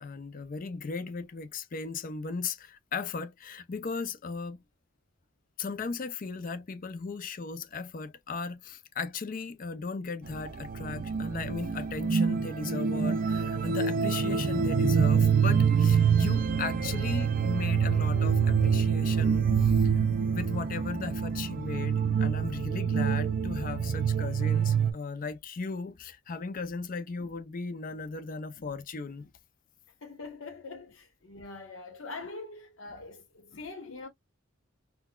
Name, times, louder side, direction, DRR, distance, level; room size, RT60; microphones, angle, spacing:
voice 1, 0.0-4.6 5.6-29.3, left 4 dB, 45° left, 0.5 m, -37 dB
sound 1, 10.3-24.9, right 6 dB, 45° right, 0.3 m, -26 dB
voice 2, 30.0-34.1, left 3 dB, 80° left, 1.0 m, -43 dB
3.9 x 2.1 x 2.2 m
head